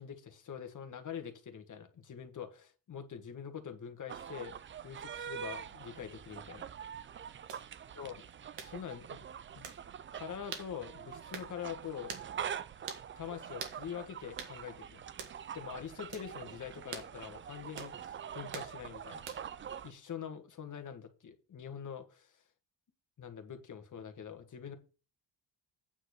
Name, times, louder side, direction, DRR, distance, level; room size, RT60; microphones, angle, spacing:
voice 1, 0.0-4.5 4.8-6.7 7.9-8.1 8.6-9.2 9.5-9.7 10.1-12.2 13.2-15.0 15.5-19.3 19.8-22.4 23.2-24.8, left 8 dB, 45° left, 7 dB, 1.6 m, -44 dB
sound 1, 4.1-19.9, right 8 dB, 30° right, 0.4 m, -45 dB
sound 2, 7.5-7.7 8.6-8.8 9.6-9.8 10.5-10.7 11.3-11.5 12.1-12.3 12.9-13.1 13.6-13.8 14.4-14.6 15.2-15.4 16.1-16.3 16.9-17.1 17.8-18.0 18.5-18.7 19.3-19.6, right 6 dB, 70° right, 1.8 m, -43 dB
9.1 x 4.1 x 6.6 m, 0.34 s
cardioid pair, 105°, 44 cm